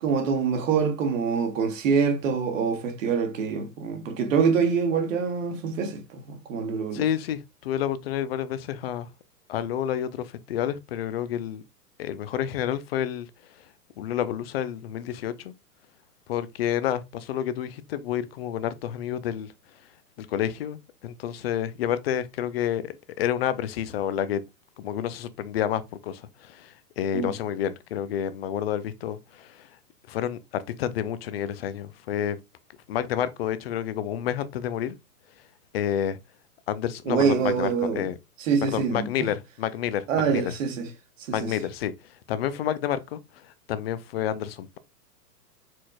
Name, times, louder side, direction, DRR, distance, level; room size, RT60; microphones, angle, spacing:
voice 1, 0.0-7.0 27.1-27.3 37.1-38.1 38.4-39.3 40.1-40.9 41.3-41.6, right 6 dB, 55° right, 1.2 m, -25 dB
voice 2, 6.9-9.1 9.5-11.6 12.0-13.3 14.0-15.5 16.3-19.5 20.2-24.4 24.8-29.7 30.1-32.4 32.9-35.0 35.7-36.2 36.7-37.7 38.0-38.2 38.6-40.5 41.3-41.9 42.3-44.8, left 10 dB, 40° left, 0.5 m, -29 dB
4.4 x 4.3 x 2.3 m
hypercardioid pair, 120°, 47 cm